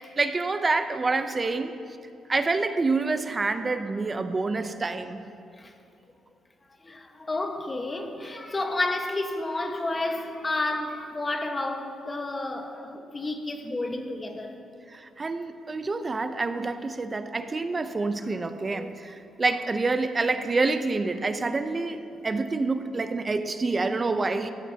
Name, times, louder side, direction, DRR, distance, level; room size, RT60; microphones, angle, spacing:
voice 1, 0.2-1.7 2.3-5.2 14.9-24.5, right 3 dB, 30° right, 10 dB, 0.6 m, -27 dB
voice 2, 6.8-14.5 18.7-18.9, left 2 dB, 25° left, 4 dB, 1.4 m, -31 dB
16.0 x 15.0 x 2.9 m, 2.6 s
cardioid pair, 90°, 0 cm